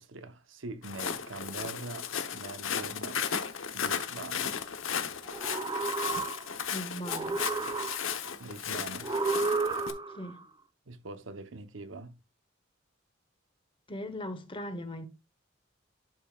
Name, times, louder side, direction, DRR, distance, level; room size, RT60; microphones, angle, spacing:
voice 1, 0.0-3.3 3.7-4.6 8.4-9.1 10.9-12.2, right 3 dB, 75° right, 1.0 m, -43 dB
Walk footsteps, 0.8-9.9, left 7 dB, 90° left, 1.0 m, -35 dB
sound 1, 5.3-6.7 7.0-8.3 9.0-10.3, right 3 dB, 20° right, 0.5 m, -32 dB
voice 2, 6.7-7.4 10.1-10.4 13.9-15.1, equal, 25° left, 1.2 m, -39 dB
11.0 x 5.6 x 2.4 m
head